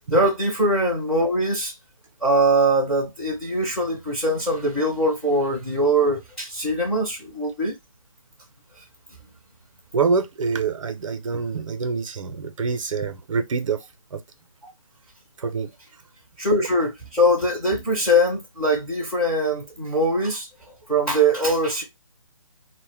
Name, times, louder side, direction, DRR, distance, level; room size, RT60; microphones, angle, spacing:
voice 1, 0.1-1.7 2.2-7.8 16.4-20.5 20.9-21.8, right 1 dB, 5° left, 0.4 m, -22 dB
voice 2, 9.9-13.8 14.1-14.2 15.4-15.7, right 5 dB, 65° right, 0.5 m, -25 dB
2.1 x 2.0 x 3.2 m
figure-of-eight pair, 150°, 18 cm